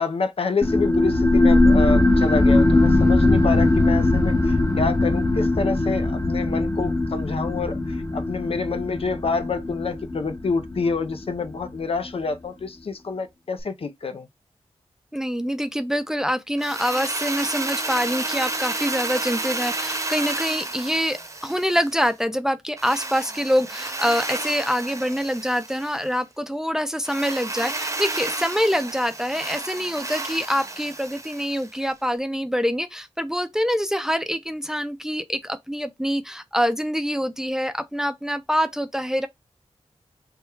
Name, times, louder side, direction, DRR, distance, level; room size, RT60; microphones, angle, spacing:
voice 1, 0.0-14.3, left 4 dB, 60° left, 0.5 m, -27 dB
sound 1, 0.6-11.7, left 2 dB, 25° left, 0.8 m, -20 dB
voice 2, 15.1-39.3, equal, 5° right, 0.5 m, -25 dB
Drill, 16.6-22.1 22.8-26.1 27.0-31.8, right 2 dB, 30° right, 0.8 m, -31 dB
3.4 x 2.2 x 4.4 m
cardioid pair, 60°, 11 cm